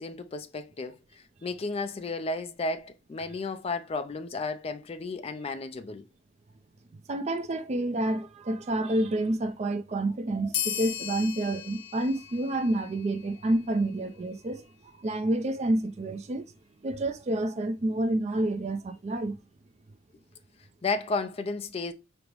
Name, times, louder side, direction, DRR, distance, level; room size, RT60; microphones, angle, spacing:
voice 1, 0.0-6.0 20.8-21.9, left 3 dB, 30° left, 0.4 m, -33 dB
voice 2, 7.1-16.5 16.8-19.4, right 1 dB, 35° right, 0.4 m, -29 dB
sound 1, 10.5-13.6, left 10 dB, 85° left, 0.6 m, -36 dB
5.1 x 2.0 x 3.0 m
head